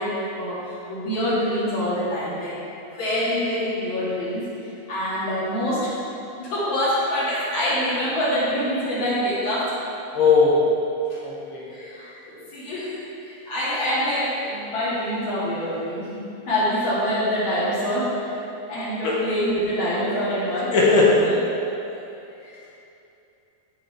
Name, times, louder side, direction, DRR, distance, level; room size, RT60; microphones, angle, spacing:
voice 1, 0.0-2.6 2.9-5.9 6.4-9.7 11.1-11.2 11.7-12.9 13.2-18.3 18.7-20.8 21.3-21.4 22.4-22.7, equal, 40° left, -9 dB, 2.0 m, -25 dB
voice 2, 10.1-10.6 11.2-11.7 19.0-19.2 20.7-21.3, left 4 dB, 70° left, -5 dB, 2.3 m, -18 dB
13.5 x 4.6 x 3.3 m, 2.8 s
omnidirectional pair, 4.6 m